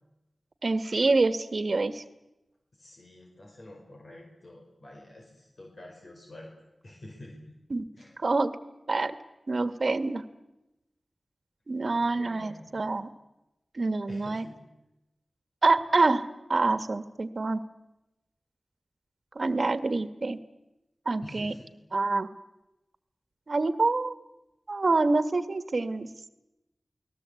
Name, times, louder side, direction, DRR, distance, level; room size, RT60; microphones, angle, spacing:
voice 1, 0.6-2.0 7.7-7.9 8.2-8.6 8.9-9.1 9.5-10.2 11.7-13.1 13.7-14.4 15.6-17.6 19.3-20.4 21.0-21.5 21.9-22.3 23.5-24.1 24.7-26.1, right 3 dB, 60° right, 13 dB, 1.6 m, -26 dB
voice 2, 2.7-6.5 6.8-7.6 7.9-8.1 12.0-12.8 14.1-14.6 21.2-21.7, left 1 dB, 55° left, 0 dB, 5.0 m, -48 dB
29.0 x 19.5 x 8.4 m, 0.95 s
wide cardioid pair, 60°, 0 cm